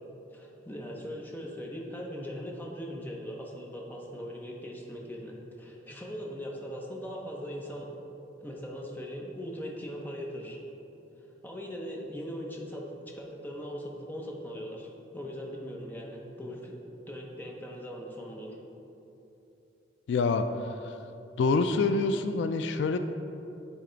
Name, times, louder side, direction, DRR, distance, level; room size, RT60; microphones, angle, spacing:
voice 1, 0.3-7.9 8.4-10.6 11.4-12.9 13.1-14.9 15.1-16.7 17.1-18.6, equal, 10° left, -1 dB, 0.7 m, -40 dB
voice 2, 20.1-20.5 20.8-21.0 21.4-23.0, left 4 dB, 80° left, 9 dB, 0.3 m, -26 dB
9.8 x 3.3 x 3.9 m, 2.9 s
head